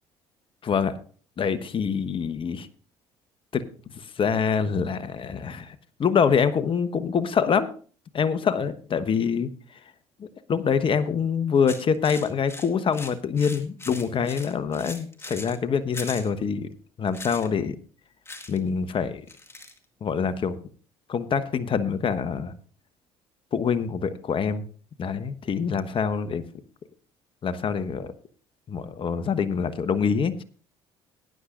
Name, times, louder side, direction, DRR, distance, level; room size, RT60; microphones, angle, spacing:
voice 1, 0.6-0.9 1.4-2.7 3.5-3.6 3.9-5.7 6.0-7.7 8.1-9.5 10.2-16.7 17.0-17.7 18.5-19.2 20.0-20.6 21.1-22.5 23.5-24.6 25.0-26.4 27.4-28.1 28.7-30.4, left 6 dB, 40° left, 12 dB, 1.1 m, -25 dB
sound 1, 11.7-15.6 15.9-16.3 17.1-17.5 18.3-18.6 18.9-19.0 19.3-19.8, left 2 dB, 20° left, 2.1 m, -40 dB
19.0 x 9.8 x 2.5 m, 0.42 s
hypercardioid pair, 70°, 13 cm